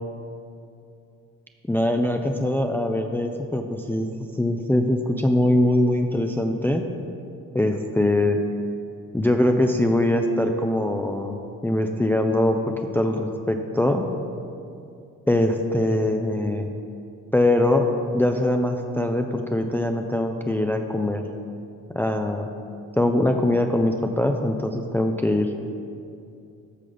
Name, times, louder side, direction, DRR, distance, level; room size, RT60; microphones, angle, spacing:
voice 1, 1.7-4.1 4.4-6.8 7.5-8.4 9.1-11.4 11.6-14.0 15.3-16.7 17.3-17.9 18.1-21.2 22.0-22.5 23.0-25.5, left 1 dB, 5° left, 4 dB, 0.5 m, -22 dB
11.5 x 6.1 x 3.9 m, 2.6 s
hypercardioid pair, 55°, 36 cm